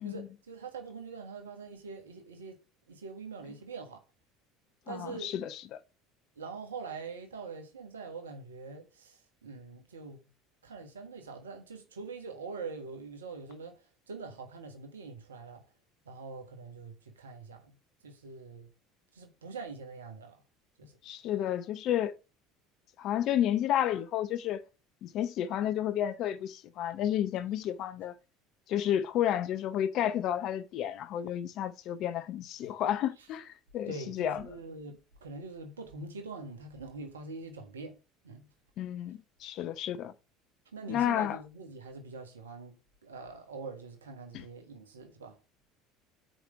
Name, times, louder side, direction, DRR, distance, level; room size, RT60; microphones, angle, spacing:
voice 1, 0.0-2.6 2.9-4.0 4.9-5.3 6.3-10.3 10.6-15.6 16.0-17.7 18.0-18.7 19.1-20.4 20.8-21.0 33.9-38.0 38.2-38.5 40.7-45.4, right 4 dB, 90° right, 1.4 m, -44 dB
voice 2, 4.9-5.8 21.0-22.1 23.0-24.6 25.0-28.2 28.7-34.4 38.8-40.1 40.9-41.4 44.3-44.4, left 11 dB, 55° left, 0.7 m, -31 dB
6.0 x 5.1 x 6.4 m
hypercardioid pair, 70°, 0 cm